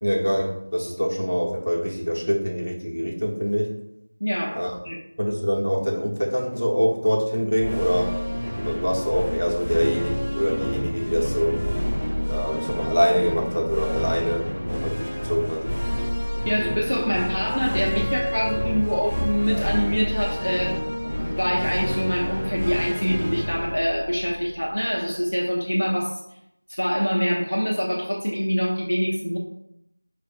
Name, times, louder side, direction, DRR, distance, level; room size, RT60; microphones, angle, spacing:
voice 1, 0.0-3.7 4.5-4.8 5.2-8.1 8.6-11.6 12.3-15.7, equal, 90° left, -1 dB, 0.9 m, -24 dB
voice 2, 4.2-4.6 4.8-5.0 16.5-20.8 21.2-26.2 26.8-29.4, equal, 60° left, -3 dB, 0.6 m, -25 dB
sound 1, 7.5-25.0, equal, 10° left, 0.5 m, -28 dB
4.6 x 2.5 x 2.5 m, 0.79 s
figure-of-eight pair, 180°, 0 cm